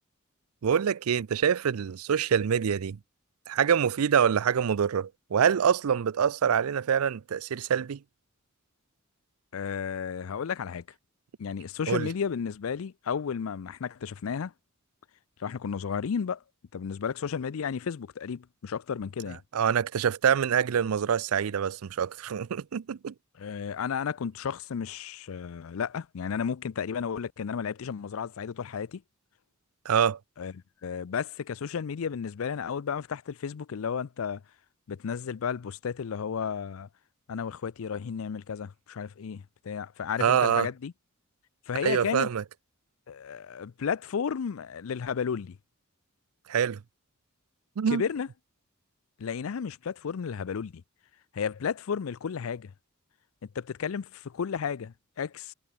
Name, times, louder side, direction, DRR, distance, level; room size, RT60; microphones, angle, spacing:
voice 1, 0.6-3.0 3.5-8.0 11.9-12.1 19.5-23.1 29.9-30.2 40.2-40.7 41.8-42.4 46.5-46.8 47.8-48.0, right 7 dB, 90° right, 0.5 m, -25 dB
voice 2, 9.5-10.8 11.4-14.5 15.4-16.4 16.7-19.4 23.4-29.0 30.4-30.5 30.8-34.4 34.9-36.9 37.3-40.9 41.7-42.3 43.1-45.6 47.9-48.3 49.2-50.8 51.3-52.7 53.6-55.5, left 6 dB, 70° left, 0.4 m, -33 dB
head